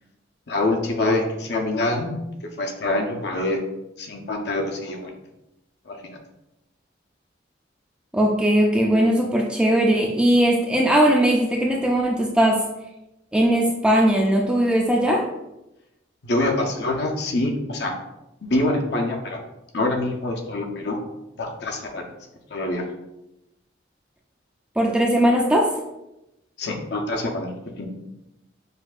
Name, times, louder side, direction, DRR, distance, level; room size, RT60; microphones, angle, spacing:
voice 1, 0.5-2.1 2.6-3.6 4.0-5.1 5.9-6.0 16.2-17.9 18.4-19.4 19.7-21.0 21.4-22.1 22.5-22.8 26.6-27.5 27.8-27.9, left 2 dB, 60° left, 2 dB, 0.7 m, -25 dB
voice 2, 8.1-12.6 13.3-15.3 24.8-25.7, right 1 dB, 5° right, 0 dB, 0.4 m, -19 dB
6.5 x 2.7 x 2.4 m, 0.91 s
head